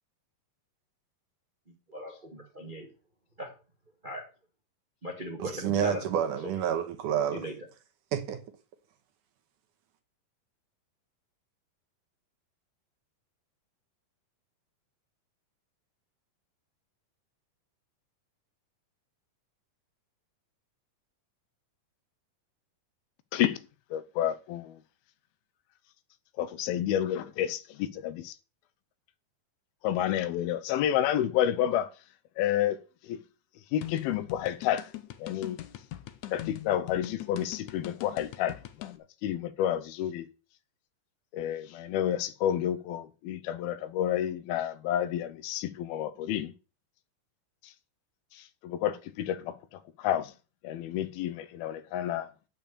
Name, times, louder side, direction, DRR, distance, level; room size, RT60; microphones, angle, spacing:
voice 1, 1.9-2.9 3.4-3.6 4.0-4.3 5.0-6.3 7.3-7.5, equal, 55° right, 0.5 m, -39 dB
voice 2, 5.4-7.4 8.1-8.4, right 9 dB, 70° right, 2.3 m, -29 dB
voice 3, 23.9-24.8 26.4-28.4 29.8-31.9 32.4-32.8 33.0-33.2 33.7-34.9 35.2-35.6 36.3-38.9 39.2-40.3 41.3-46.5 48.3-50.3 50.6-52.3, left 11 dB, 90° left, 2.6 m, -30 dB
sound 1, 33.8-39.0, left 14 dB, 70° left, 1.9 m, -41 dB
9.0 x 6.8 x 6.7 m
omnidirectional pair, 4.3 m